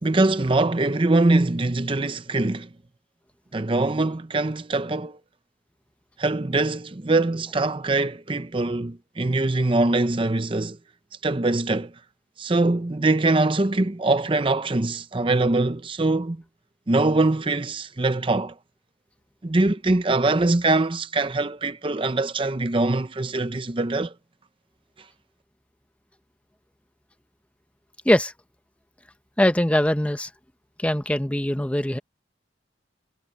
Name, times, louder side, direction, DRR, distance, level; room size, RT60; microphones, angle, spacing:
voice 1, 0.0-2.7 3.5-5.2 6.2-10.8 11.2-11.9 12.4-16.4 16.9-18.5 19.4-24.1, right 2 dB, 30° right, 0.7 m, -23 dB
voice 2, 29.4-30.3 30.8-32.0, left 1 dB, 5° left, 0.7 m, -21 dB
head